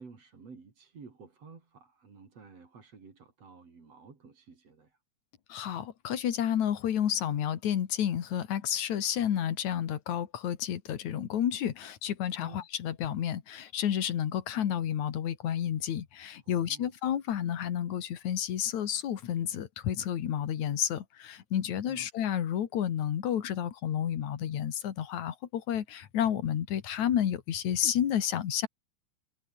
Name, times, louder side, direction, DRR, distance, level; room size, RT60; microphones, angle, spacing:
voice 1, 0.0-5.0 12.4-12.7 16.4-16.9 21.9-22.1, right 5 dB, 50° right, 5.1 m, -52 dB
voice 2, 5.5-28.7, left 10 dB, 65° left, 3.0 m, -31 dB
omnidirectional pair, 3.7 m